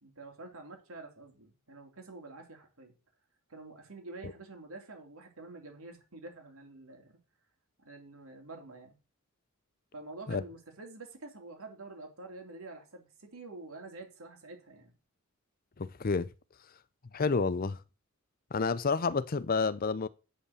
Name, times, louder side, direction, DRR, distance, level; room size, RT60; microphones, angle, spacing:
voice 1, 0.0-2.9 3.5-7.2 7.8-9.0 9.9-14.9, right 3 dB, 85° right, 3.2 m, -48 dB
voice 2, 15.8-16.3 17.1-17.8 18.5-20.1, left 4 dB, 45° left, 0.5 m, -29 dB
8.6 x 5.5 x 6.4 m
head